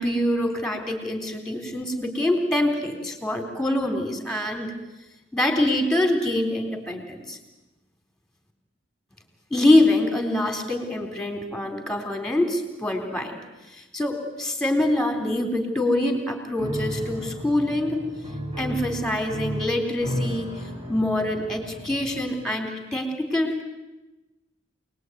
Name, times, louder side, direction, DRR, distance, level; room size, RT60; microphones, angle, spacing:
voice 1, 0.0-4.7 5.3-7.4 9.5-13.4 13.9-18.0 18.6-20.6 20.9-23.6, left 1 dB, 5° left, 4 dB, 3.9 m, -25 dB
Piano, 16.6-22.5, equal, 30° right, 5.1 m, -33 dB
27.0 x 20.0 x 9.5 m, 1.1 s
head